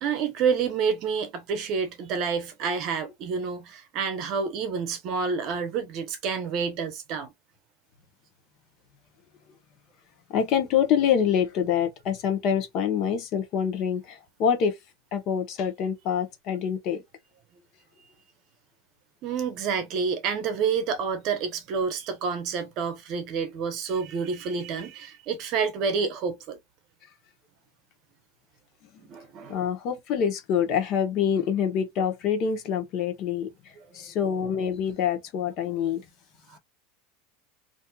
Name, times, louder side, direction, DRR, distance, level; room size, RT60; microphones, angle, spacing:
voice 1, 0.0-7.3 19.2-26.6 29.1-29.6 35.6-35.7 36.5-36.6, right 5 dB, 40° right, 0.9 m, -28 dB
voice 2, 10.3-14.8 15.1-17.0 29.5-33.5 33.9-36.0, left 8 dB, 40° left, 0.9 m, -26 dB
4.2 x 2.6 x 2.3 m
supercardioid pair, 165°, 0 cm